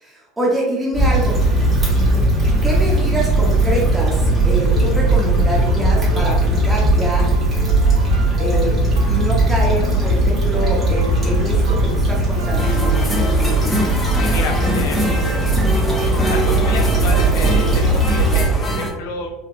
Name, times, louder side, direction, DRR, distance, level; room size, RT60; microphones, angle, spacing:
voice 1, 0.0-1.4 2.1-7.3 8.4-12.7, right 1 dB, 10° right, -4 dB, 0.8 m, -25 dB
Stream / Traffic noise roadway noise / Trickle dribble, 0.9-18.5, right 2 dB, 35° right, 1.3 m, -17 dB
sound 1, 4.4-13.6, right 3 dB, 75° right, 0.7 m, -34 dB
sound 2, 12.6-18.9, equal, 15° left, 0.7 m, -23 dB
voice 2, 14.1-15.2 16.3-19.3, left 3 dB, 65° left, 2 dB, 0.6 m, -29 dB
3.4 x 2.8 x 2.4 m, 1.1 s
hypercardioid pair, 75°, 0 cm